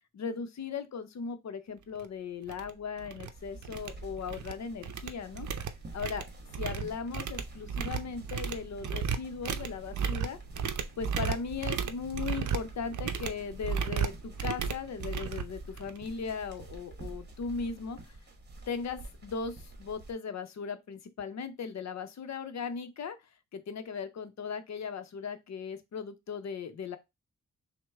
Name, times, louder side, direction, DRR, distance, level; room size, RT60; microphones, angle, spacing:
voice 1, 0.1-5.5 5.9-6.3 6.6-10.4 11.0-18.0 18.7-23.1 23.5-27.0, left 5 dB, 60° left, 0.7 m, -38 dB
sound 1, 2.0-2.1 2.5-2.7 3.0-3.3 3.6-4.5 4.8-16.1, right 6 dB, 70° right, 0.6 m, -34 dB
sound 2, 3.3-20.1, right 2 dB, 35° right, 1.1 m, -48 dB
6.1 x 2.2 x 3.4 m
wide cardioid pair, 175°, 30 cm